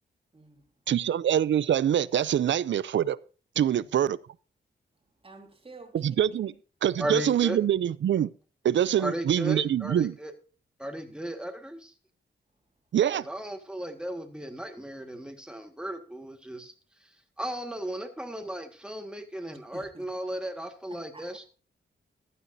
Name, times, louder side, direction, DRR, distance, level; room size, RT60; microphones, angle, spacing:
voice 1, 0.3-0.7 3.6-3.9 5.2-6.2 19.7-20.0 20.9-21.3, right 3 dB, 30° right, 2.4 m, -49 dB
voice 2, 0.9-3.2 3.6-4.2 6.0-6.5 6.8-8.3 8.6-10.1 12.9-13.3, right 10 dB, 70° right, 0.5 m, -24 dB
voice 3, 7.0-7.6 9.0-10.3 10.8-11.9 13.1-16.7 17.0-21.5, right 1 dB, 5° right, 1.8 m, -36 dB
15.0 x 11.0 x 2.7 m
cardioid pair, 80°, 20 cm